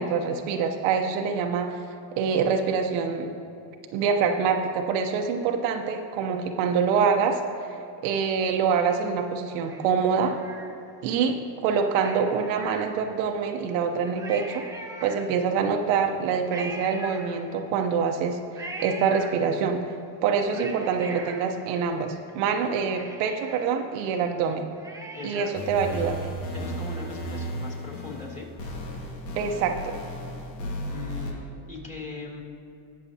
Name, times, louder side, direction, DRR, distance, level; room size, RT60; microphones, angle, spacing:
voice 1, 0.0-1.9 2.2-3.3 3.9-7.4 8.0-10.4 11.0-14.7 15.0-18.4 18.8-19.8 20.2-24.7 25.2-26.2 29.4-29.9, right 6 dB, 70° right, 4 dB, 0.9 m, -25 dB
Cat, 9.7-11.1 12.0-13.4 13.8-13.9 14.1-15.7 16.5-17.9 18.5-19.8 20.3-22.3 22.6-22.7 23.0-25.8 26.1-26.2, right 2 dB, 5° right, 0.8 m, -41 dB
voice 2, 25.1-25.5 26.5-28.5 30.9-32.4, left 3 dB, 15° left, -3 dB, 2.6 m, -39 dB
sound 1, 25.5-31.3, equal, 85° left, 1.9 m, -34 dB
20.0 x 6.7 x 2.8 m, 2.8 s
supercardioid pair, 115°, 49 cm